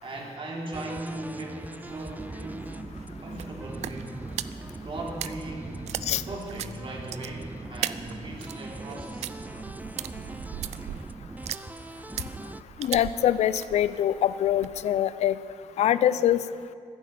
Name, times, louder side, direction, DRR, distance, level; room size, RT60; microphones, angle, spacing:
voice 1, 0.0-2.8 3.2-4.2 4.8-5.8 6.3-9.4, right 2 dB, 50° right, -1 dB, 3.6 m, -38 dB
sound 1, 0.7-12.6, right 2 dB, 15° right, 0.4 m, -41 dB
sound 2, 1.8-14.9, right 12 dB, 85° right, 0.4 m, -40 dB
sound 3, 2.0-6.9, right 1 dB, 55° left, 2.6 m, -48 dB
voice 2, 12.8-15.4 15.8-16.4, left 11 dB, 80° left, 15 dB, 0.5 m, -24 dB
14.5 x 11.0 x 8.5 m, 2.4 s
cardioid pair, 70°, 11 cm